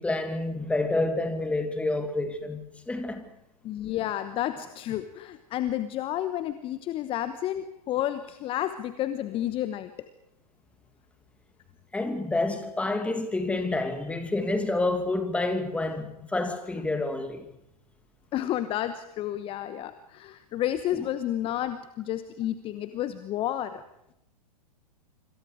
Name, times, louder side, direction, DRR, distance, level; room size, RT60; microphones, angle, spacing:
voice 1, 0.0-3.3 11.9-17.5 21.0-21.1, left 2 dB, 5° left, 2.5 m, -28 dB
voice 2, 3.6-10.1 18.3-23.8, left 12 dB, 25° left, 1.1 m, -31 dB
26.5 x 26.0 x 5.1 m
figure-of-eight pair, 105°, 21 cm